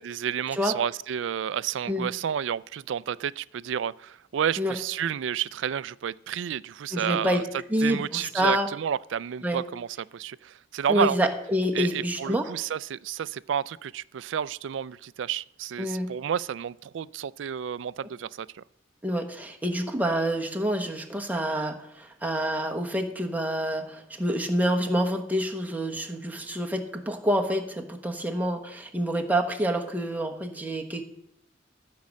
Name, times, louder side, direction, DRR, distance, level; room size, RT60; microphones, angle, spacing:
voice 1, 0.0-7.4 7.8-11.2 11.7-18.6, right 8 dB, 70° right, 0.4 m, -31 dB
voice 2, 6.9-7.4 7.7-8.7 9.4-9.6 10.9-12.5 15.8-16.1 19.0-31.0, equal, 10° right, 1.2 m, -27 dB
14.5 x 5.4 x 7.4 m
head